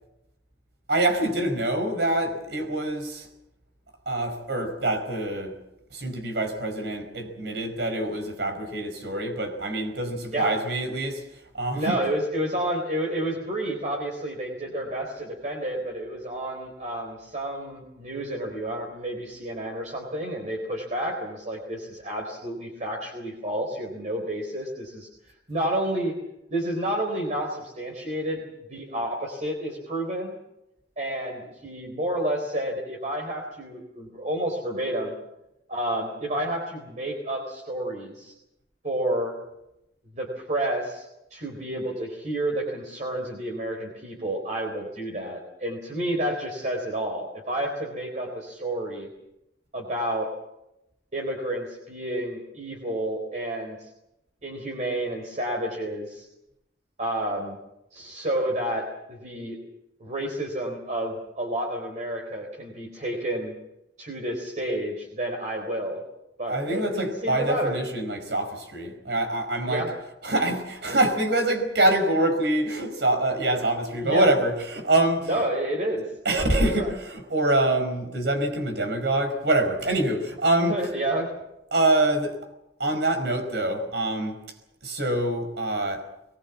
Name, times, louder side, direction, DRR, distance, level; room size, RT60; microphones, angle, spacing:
voice 1, 0.9-3.3 4.1-5.6 5.9-11.2 11.5-12.0 66.5-69.9 70.2-75.4 76.3-80.7 81.7-82.4 82.8-84.4 84.8-86.1, right 1 dB, 70° right, 5.1 m, -25 dB
voice 2, 11.7-25.1 25.5-26.1 26.5-28.4 28.7-30.3 31.0-35.1 35.7-38.3 38.8-39.3 40.1-49.1 49.7-50.3 51.1-53.9 54.4-56.3 57.0-57.6 57.9-59.6 60.0-63.5 64.0-66.0 66.4-67.8 69.7-69.9 74.0-74.2 75.3-76.5 76.8-76.9 80.6-81.3, right 1 dB, 45° right, 4.0 m, -30 dB
22.5 x 20.5 x 7.3 m
head